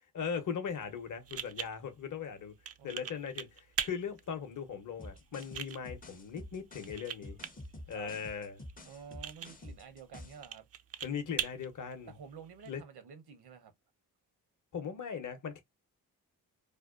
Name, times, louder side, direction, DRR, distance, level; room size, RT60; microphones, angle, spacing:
voice 1, 0.1-2.5 2.8-7.4 7.9-8.6 11.0-12.1 12.7-12.8 14.7-15.6, left 6 dB, 50° left, 0.9 m, -39 dB
sound 1, 0.7-12.7, right 8 dB, 40° right, 0.4 m, -44 dB
voice 2, 2.8-3.2 7.9-8.1 8.8-10.7 12.1-13.7, right 7 dB, 70° right, 0.9 m, -50 dB
sound 2, 5.0-10.5, left 1 dB, 20° left, 0.6 m, -49 dB
2.7 x 2.1 x 2.4 m
supercardioid pair, 40°, 40 cm